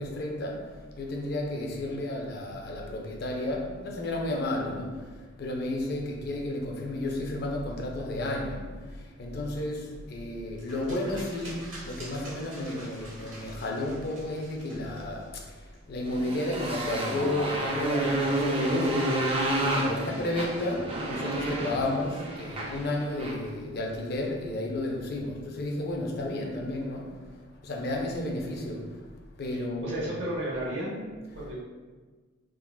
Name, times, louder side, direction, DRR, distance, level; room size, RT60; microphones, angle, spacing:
voice 1, 0.0-19.4 19.7-29.1 29.4-30.3, left 1 dB, 55° left, 0.4 m, -32 dB
sound 1, 10.6-15.8, right 1 dB, 90° right, 1.0 m, -47 dB
Motorcycle, 16.1-23.5, right 1 dB, 30° right, 0.4 m, -30 dB
voice 2, 29.5-31.1 31.3-31.5, right 1 dB, 60° right, 0.8 m, -33 dB
3.6 x 2.3 x 2.3 m
head